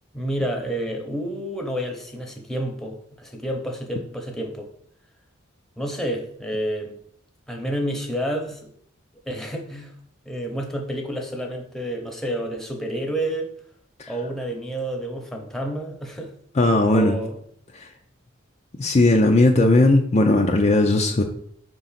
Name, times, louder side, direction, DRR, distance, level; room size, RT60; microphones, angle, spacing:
voice 1, 0.1-4.7 5.8-7.0 7.5-8.6 9.2-9.9 10.2-13.5 14.1-16.3 16.9-17.4, right 1 dB, ahead, 2 dB, 1.0 m, -29 dB
voice 2, 16.6-17.2 17.7-17.9 18.8-21.2, left 2 dB, 35° left, 2 dB, 0.5 m, -17 dB
5.2 x 3.9 x 5.8 m, 0.65 s
head